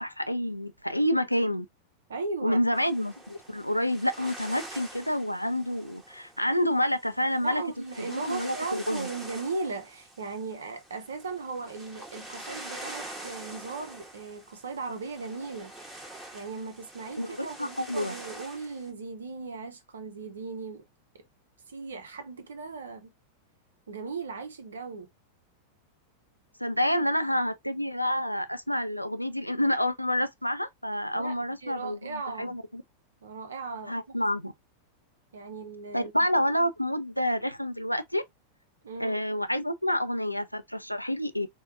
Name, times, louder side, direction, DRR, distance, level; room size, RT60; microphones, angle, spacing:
voice 1, 0.0-1.7 2.4-7.6 8.0-9.1 17.2-18.1 26.6-32.8 33.9-34.5 35.9-38.2 39.0-41.5, equal, 90° left, 0.4 m, -28 dB
voice 2, 2.1-2.6 7.4-15.7 16.3-20.9 21.7-23.1 23.9-25.1 31.1-32.6 33.2-34.2 35.3-36.1 38.8-39.2, right 4 dB, 70° right, 0.7 m, -37 dB
sound 1, 2.7-18.9, right 1 dB, 10° right, 1.1 m, -45 dB
4.4 x 2.3 x 2.4 m
figure-of-eight pair, 90°, 0 cm